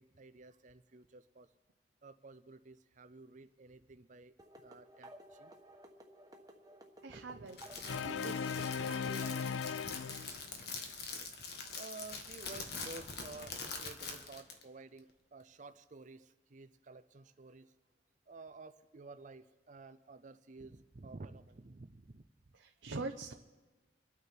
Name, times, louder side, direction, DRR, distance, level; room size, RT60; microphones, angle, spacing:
voice 1, 0.0-1.5 2.0-4.3 4.6-5.5 7.1-7.5 7.9-8.3 8.8-9.2 9.5-11.5 11.7-17.7 18.3-22.3, right 3 dB, 40° right, 0.5 m, -53 dB
sound 1, 4.4-9.6, right 1 dB, 20° right, 1.2 m, -56 dB
voice 2, 7.0-7.6 7.9-9.5 22.5-23.3, right 3 dB, 85° right, 0.8 m, -45 dB
Crackle, 7.5-14.6, left 4 dB, 55° left, 1.5 m, -44 dB
sound 2, 7.9-10.6, left 6 dB, 85° left, 0.4 m, -37 dB
27.0 x 9.5 x 4.5 m
head